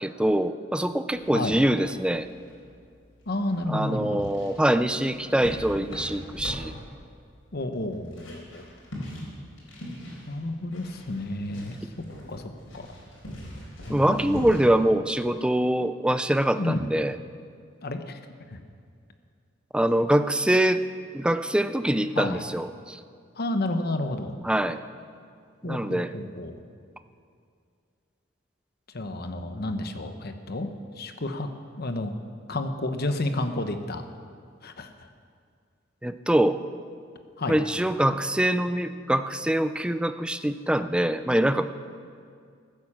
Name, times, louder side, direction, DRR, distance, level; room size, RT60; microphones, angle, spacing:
voice 1, 0.0-2.3 3.7-6.7 13.9-17.2 19.7-20.8 21.1-23.0 24.4-24.8 25.6-26.1 36.0-36.6 37.5-41.7, right 1 dB, 5° right, 11 dB, 0.4 m, -24 dB
sound 1, 1.1-14.6, equal, 90° left, 4.6 m, -42 dB
voice 2, 3.3-4.3 7.5-8.7 10.3-11.8 12.3-12.9 13.9-14.5 16.6-16.9 17.8-18.2 18.5-18.6 22.2-22.4 23.4-24.3 25.6-26.6 28.9-30.7 31.0-31.5 31.8-32.1 32.5-34.0 34.6-34.9 37.4-37.6, left 2 dB, 55° left, 7 dB, 1.0 m, -31 dB
15.0 x 9.3 x 7.3 m, 2.2 s
head